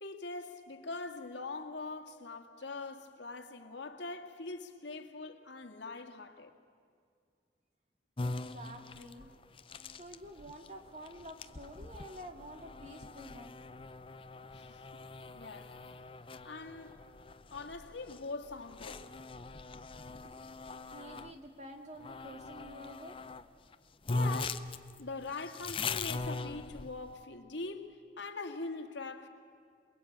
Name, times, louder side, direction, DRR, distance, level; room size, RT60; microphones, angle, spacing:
voice 1, 0.0-6.5 9.2-9.3 14.5-15.0 15.3-15.8 16.4-17.0 17.5-19.1 24.1-24.6 25.0-29.3, left 3 dB, 90° left, 2.0 m, -43 dB
sound 1, 8.2-21.3 22.0-23.4 23.7-23.8 24.1-27.2, left 3 dB, 30° left, 0.6 m, -41 dB
voice 2, 8.2-9.3 9.9-13.7 20.2-20.4 20.8-23.1 24.4-24.5, equal, 40° right, 2.2 m, -49 dB
27.5 x 20.5 x 8.7 m
head